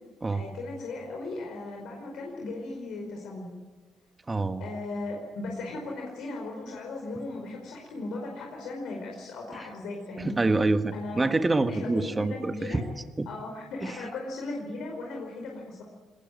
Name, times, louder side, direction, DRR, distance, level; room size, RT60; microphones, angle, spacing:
voice 1, 0.3-3.6 4.6-10.4 10.9-11.3 11.7-12.8 13.3-15.8, left 2 dB, 80° left, 0 dB, 5.0 m, -37 dB
voice 2, 4.3-4.6 9.5-9.7 10.2-12.8 13.2-13.3 13.8-14.0, right 2 dB, 20° right, 8 dB, 1.6 m, -26 dB
21.5 x 20.0 x 9.4 m, 1.4 s
cardioid pair, 90°, 0 cm